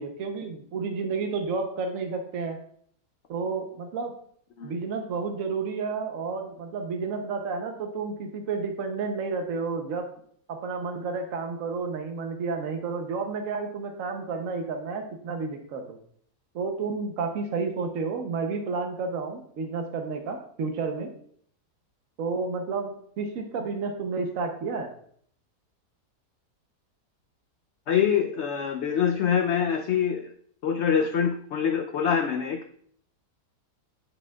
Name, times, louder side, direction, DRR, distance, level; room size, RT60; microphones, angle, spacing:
voice 1, 0.0-2.6 3.3-4.2 4.6-10.1 10.5-16.0 16.5-21.1 22.2-24.9, right 4 dB, 60° right, 4 dB, 1.0 m, -31 dB
voice 2, 27.9-30.3 30.6-32.6, left 7 dB, 80° left, 5 dB, 0.6 m, -25 dB
9.5 x 5.4 x 2.3 m, 0.63 s
omnidirectional pair, 1.7 m